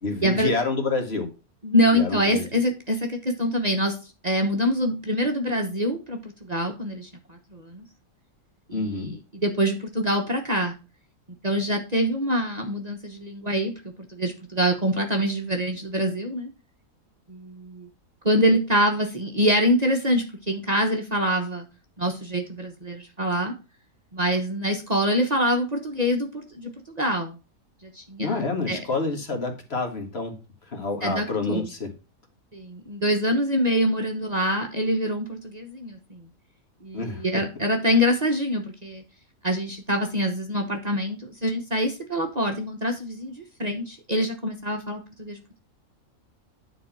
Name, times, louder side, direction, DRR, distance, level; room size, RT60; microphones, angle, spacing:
voice 1, 0.0-1.3 1.9-2.4 8.7-9.1 28.2-30.3 30.7-31.9 36.9-37.4, left 3 dB, 45° left, 4 dB, 1.9 m, -28 dB
voice 2, 1.6-4.0 4.2-7.8 8.7-9.2 9.4-10.7 11.4-13.7 14.1-16.5 17.3-17.9 18.2-21.6 22.0-23.5 24.1-27.3 28.0-28.4 28.7-28.8 31.0-31.7 32.5-36.2 36.8-39.0 39.4-45.6, equal, 30° right, 3 dB, 1.1 m, -25 dB
10.0 x 4.1 x 5.8 m, 0.31 s
omnidirectional pair, 1.5 m